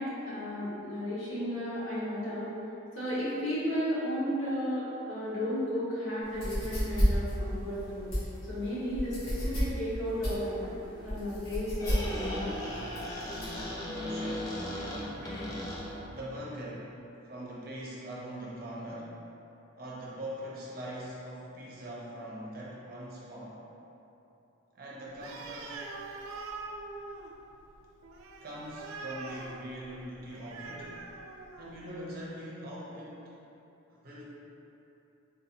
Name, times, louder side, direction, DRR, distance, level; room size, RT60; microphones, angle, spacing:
voice 1, 0.0-2.5 2.9-8.1 8.5-10.7 11.0-12.5, equal, 70° left, -10 dB, 1.1 m, -33 dB
sound 1, 6.2-13.6, equal, 90° left, 1.3 m, -32 dB
Squeak, 11.6-16.2, left 1 dB, 15° left, 0.4 m, -37 dB
voice 2, 13.8-15.6 16.1-16.9 17.2-19.1 19.7-23.6 24.7-25.8 28.4-31.0 31.6-33.3 34.0-34.3, right 1 dB, 45° right, -6 dB, 0.6 m, -42 dB
Animal, 25.1-31.9, right 3 dB, 90° right, 0.3 m, -44 dB
3.7 x 2.6 x 2.8 m, 3.0 s
head